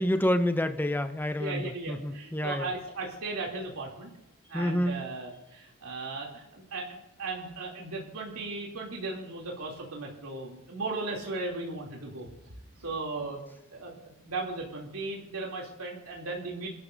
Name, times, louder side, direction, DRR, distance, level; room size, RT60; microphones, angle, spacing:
voice 1, 0.0-2.7 4.5-5.1, left 1 dB, 10° left, 8 dB, 0.8 m, -28 dB
voice 2, 1.4-4.1 4.5-12.3 12.8-13.4 13.7-16.7, right 3 dB, 90° right, -2 dB, 3.0 m, -37 dB
26.5 x 12.0 x 2.7 m, 0.91 s
head